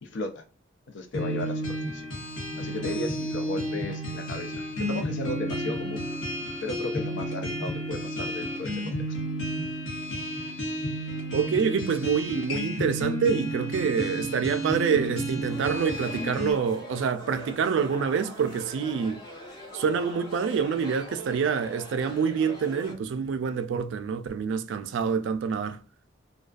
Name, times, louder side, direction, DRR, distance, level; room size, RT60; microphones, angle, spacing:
voice 1, 0.0-0.4 0.9-2.1 2.6-6.1 6.6-9.0, left 2 dB, 65° left, 0.5 m, -35 dB
sound 1, 1.1-16.5, equal, 90° left, 1.0 m, -32 dB
voice 2, 11.3-19.2 19.7-25.8, right 6 dB, 70° right, 0.3 m, -26 dB
sound 2, 15.5-22.9, equal, 20° left, 0.8 m, -43 dB
2.3 x 2.3 x 2.3 m
head